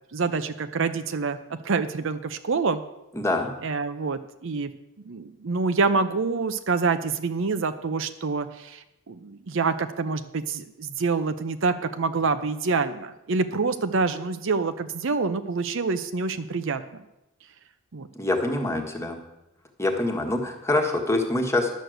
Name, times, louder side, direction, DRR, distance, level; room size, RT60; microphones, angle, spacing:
voice 1, 0.1-2.8 3.6-4.7 5.0-16.8 17.9-18.1, right 4 dB, 60° right, 10 dB, 0.6 m, -26 dB
voice 2, 3.1-3.5 18.1-19.2 19.8-21.7, left 2 dB, 15° left, 2 dB, 1.4 m, -25 dB
11.5 x 6.5 x 7.8 m, 0.93 s
head